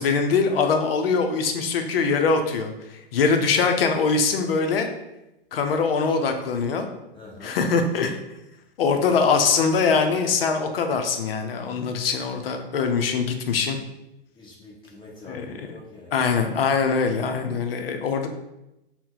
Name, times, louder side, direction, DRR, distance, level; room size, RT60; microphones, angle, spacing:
voice 1, 0.0-2.7 3.1-4.9 5.5-6.9 7.4-8.2 8.8-13.8 15.3-15.8 16.1-18.3, left 5 dB, 70° left, 6 dB, 0.6 m, -22 dB
voice 2, 7.1-7.6 14.3-16.1, left 2 dB, 15° left, -5 dB, 1.1 m, -44 dB
2.7 x 2.1 x 3.7 m, 0.91 s
hypercardioid pair, 110°, 30 cm